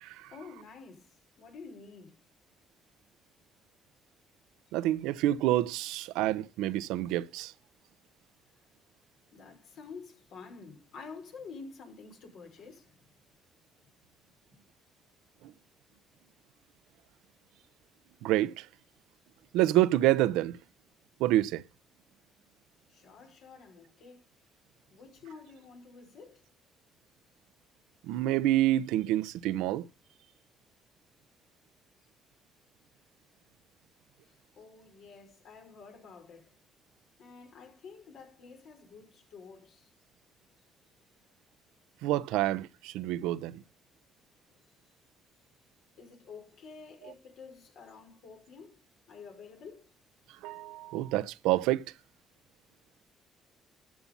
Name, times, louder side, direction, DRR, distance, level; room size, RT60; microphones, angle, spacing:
voice 1, 0.3-2.1 9.3-13.1 14.5-14.6 22.9-24.3 24.9-26.4 34.2-36.5 37.2-39.9 44.5-44.7 46.0-48.8 49.1-49.9, left 5 dB, 75° left, 5.6 m, -49 dB
voice 2, 4.7-7.5 18.2-18.6 19.5-20.6 21.2-21.6 28.1-29.8 42.0-43.6 50.4-51.8, right 14 dB, 90° right, 0.6 m, -27 dB
13.5 x 7.2 x 5.5 m
supercardioid pair, 65°, 0 cm